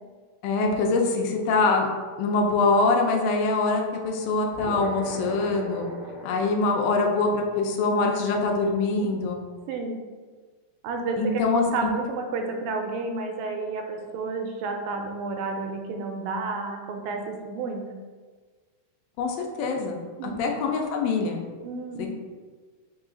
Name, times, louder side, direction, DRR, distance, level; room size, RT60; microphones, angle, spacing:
voice 1, 0.4-1.9 2.2-5.9 6.2-9.4 11.2-11.9 19.2-21.4 22.0-22.1, left 3 dB, 80° left, 1 dB, 2.3 m, -24 dB
sound 1, 4.5-9.3, equal, 60° left, 0.8 m, -39 dB
voice 2, 9.7-10.0 10.8-17.9 20.2-20.6 21.6-22.1, right 3 dB, 85° right, 3 dB, 2.2 m, -31 dB
5.5 x 2.4 x 3.7 m, 1.5 s
omnidirectional pair, 4.0 m